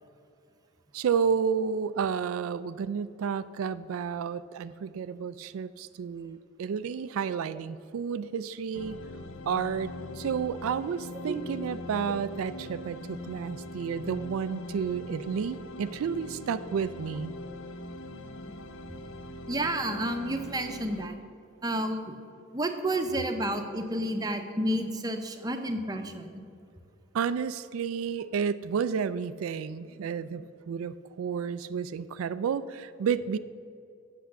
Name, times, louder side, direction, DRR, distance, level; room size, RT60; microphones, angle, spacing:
voice 1, 0.9-9.0 9.5-17.3 27.1-33.4, right 6 dB, 85° right, 13 dB, 0.3 m, -31 dB
sound 1, 8.7-21.1, left 1 dB, 60° left, 0.6 m, -41 dB
voice 2, 19.5-21.1 21.6-22.1 22.5-26.4, right 1 dB, 20° right, 6 dB, 0.7 m, -30 dB
8.2 x 6.8 x 7.4 m, 2.5 s
head